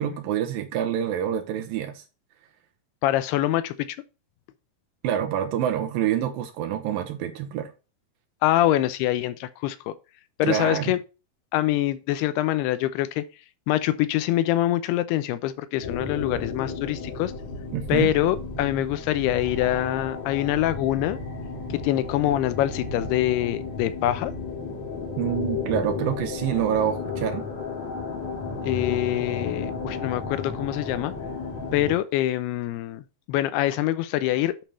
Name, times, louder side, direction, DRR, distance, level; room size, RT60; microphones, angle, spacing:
voice 1, 0.0-2.0 5.0-7.7 10.4-10.9 17.7-18.1 25.2-27.5, right 10 dB, 75° right, 2.3 m, -26 dB
voice 2, 3.0-4.0 8.4-9.9 10.4-11.0 11.5-13.2 13.7-17.3 17.9-21.2 21.7-24.3 28.6-31.1 31.7-34.6, left 13 dB, 90° left, 2.7 m, -25 dB
sound 1, 15.8-31.9, left 4 dB, 55° left, 2.6 m, -33 dB
9.0 x 3.4 x 5.4 m
omnidirectional pair, 4.5 m